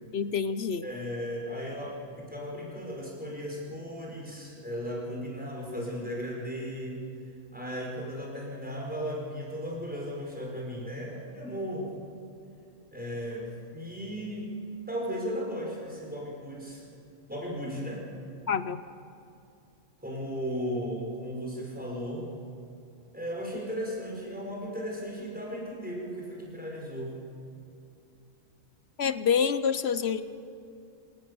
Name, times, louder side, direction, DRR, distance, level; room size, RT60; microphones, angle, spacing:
voice 1, 0.1-0.9 18.5-18.8 29.0-30.2, left 7 dB, 60° left, 12 dB, 0.9 m, -27 dB
voice 2, 0.8-7.0 7.5-11.9 12.9-14.5 14.9-16.9 17.3-18.0 20.0-22.3 23.1-27.1, equal, 5° right, -2 dB, 5.3 m, -36 dB
26.0 x 18.5 x 6.9 m, 2.6 s
omnidirectional pair, 1.4 m